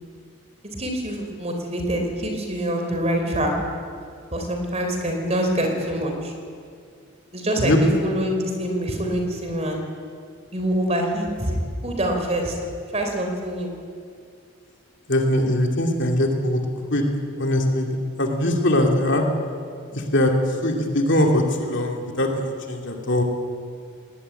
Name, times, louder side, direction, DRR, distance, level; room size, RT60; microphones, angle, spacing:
voice 1, 0.8-3.5 4.3-6.3 7.3-9.9 10.5-11.6 11.8-12.5 12.9-13.7, right 1 dB, 30° right, 3 dB, 3.9 m, -25 dB
voice 2, 15.1-16.6 16.9-17.0 17.4-17.9 18.2-19.2 19.9-20.3 20.6-23.2, left 1 dB, 55° left, 1 dB, 2.9 m, -21 dB
19.5 x 19.5 x 9.2 m, 2.2 s
head